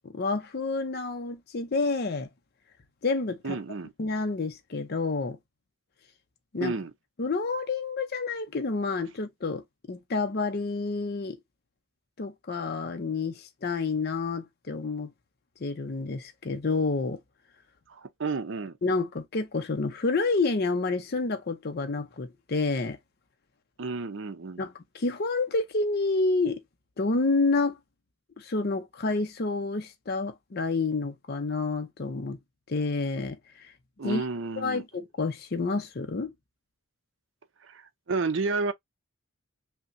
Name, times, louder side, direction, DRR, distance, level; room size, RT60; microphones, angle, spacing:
voice 1, 0.0-2.3 3.0-3.6 4.0-5.4 6.5-6.7 7.2-11.4 12.2-15.1 15.6-17.2 18.8-23.0 24.6-26.6 27.0-27.8 28.4-32.4 32.7-33.7 34.0-34.2 34.6-36.3, left 3 dB, 45° left, 0.5 m, -29 dB
voice 2, 3.4-3.9 6.6-6.9 17.9-18.7 23.8-24.6 34.0-34.8 37.6-38.7, right 4 dB, 55° right, 0.5 m, -31 dB
5.5 x 2.1 x 2.5 m
head